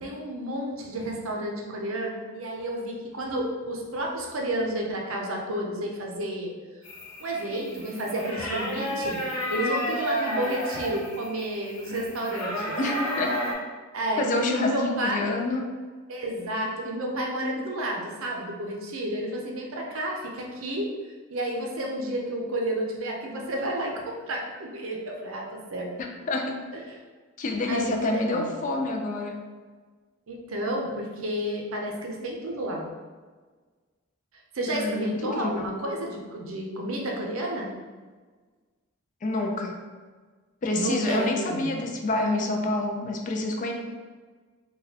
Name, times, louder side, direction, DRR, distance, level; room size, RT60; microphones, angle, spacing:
voice 1, 0.0-6.5 7.2-9.2 9.5-12.8 13.9-15.3 16.1-20.9 21.3-25.9 26.7-27.0 27.7-28.5 30.3-32.9 34.5-37.7 40.7-41.7, right 1 dB, 70° right, 0 dB, 0.6 m, -31 dB
sound 1, 6.8-13.5, equal, 85° left, 0.8 m, -32 dB
voice 2, 12.8-13.4 14.2-15.7 26.0-26.6 27.4-29.4 34.7-35.7 39.2-39.7 40.6-43.7, left 2 dB, 35° left, 2 dB, 0.3 m, -28 dB
3.8 x 2.3 x 2.8 m, 1.4 s
head